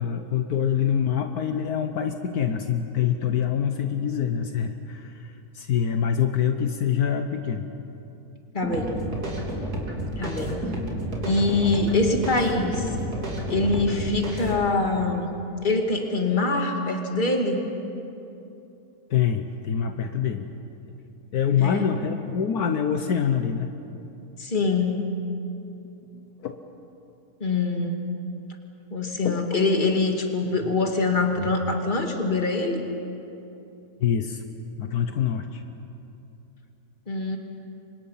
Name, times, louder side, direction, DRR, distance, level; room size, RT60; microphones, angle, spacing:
voice 1, 0.0-7.7 19.1-20.5 21.3-23.7 26.1-26.6 29.2-29.4 34.0-34.4 34.8-35.6, left 8 dB, 75° left, 6 dB, 1.5 m, -25 dB
voice 2, 8.5-9.0 10.2-10.6 11.2-12.9 13.5-15.3 15.6-17.6 21.6-21.9 24.4-25.0 27.4-28.0 28.9-32.8 37.1-37.4, left 3 dB, 30° left, 3 dB, 2.3 m, -24 dB
sound 1, 8.6-14.6, right 1 dB, 75° right, 3.5 m, -30 dB
30.0 x 25.0 x 5.7 m, 2.9 s
omnidirectional pair, 1.7 m